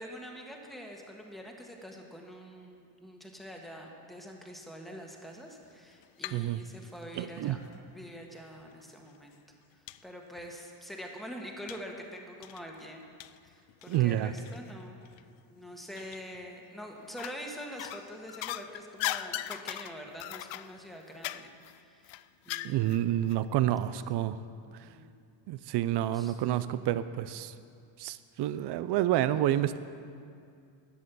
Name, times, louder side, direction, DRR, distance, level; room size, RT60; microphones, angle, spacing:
voice 1, 0.0-7.6 7.9-9.4 9.7-13.1 13.4-15.0 15.5-22.1 22.4-23.0 24.8-25.1 26.1-26.3, equal, ahead, 0 dB, 1.4 m, -45 dB
sound 1, 5.7-6.5 6.8-7.8 8.6-8.7 9.1-9.2 9.9-10.0 10.4-10.5 11.7-11.9 12.4-14.7 15.0-15.2 15.9-16.5 17.0-17.4 17.8-23.0 23.3-23.4, left 14 dB, 70° left, 0.5 m, -39 dB
voice 2, 6.3-6.6 7.2-7.6 13.9-14.3 22.6-24.4 25.5-27.5 28.0-29.8, right 13 dB, 60° right, 14 dB, 0.6 m, -29 dB
12.0 x 7.6 x 6.9 m, 2.3 s
cardioid pair, 115°, 48 cm